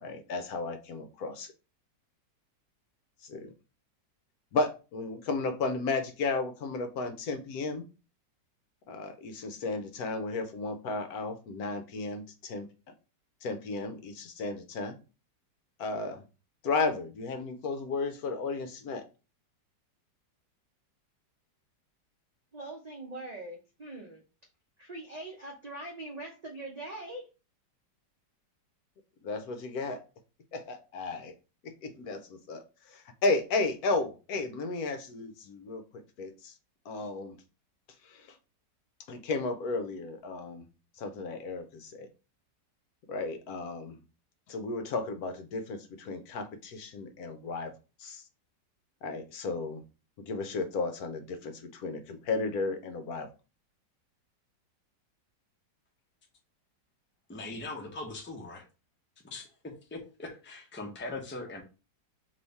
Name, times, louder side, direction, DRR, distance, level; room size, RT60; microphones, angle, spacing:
voice 1, 0.0-1.5 3.2-3.5 4.5-7.8 8.9-12.7 13.4-15.0 15.8-16.2 16.6-19.0 29.2-30.0 30.5-31.3 31.6-35.8 36.2-36.5 36.9-37.4 38.0-38.4 39.1-40.6 41.0-42.1 43.1-44.0 44.5-47.7 48.0-48.2 49.0-49.8 50.2-53.3, left 3 dB, 70° left, 7 dB, 1.0 m, -34 dB
voice 2, 22.5-24.2 24.8-27.3, right 2 dB, 90° right, -1 dB, 0.3 m, -42 dB
voice 3, 57.3-58.6 59.2-59.5 59.9-61.6, left 2 dB, 15° left, 1 dB, 0.3 m, -40 dB
3.4 x 3.0 x 4.0 m, 0.32 s
omnidirectional pair, 1.9 m